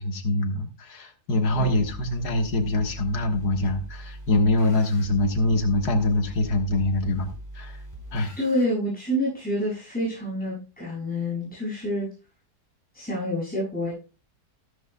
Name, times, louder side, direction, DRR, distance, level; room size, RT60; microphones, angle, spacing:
voice 1, 0.0-7.3 7.5-7.8 8.1-8.4, left 2 dB, 80° left, 5 dB, 2.0 m, -24 dB
sound 1, 1.5-8.6, right 1 dB, 30° right, 3.7 m, -41 dB
voice 2, 8.4-12.1 12.9-13.9, left 1 dB, 5° left, -7 dB, 7.3 m, -28 dB
13.5 x 13.5 x 2.3 m, 0.32 s
omnidirectional pair, 1.7 m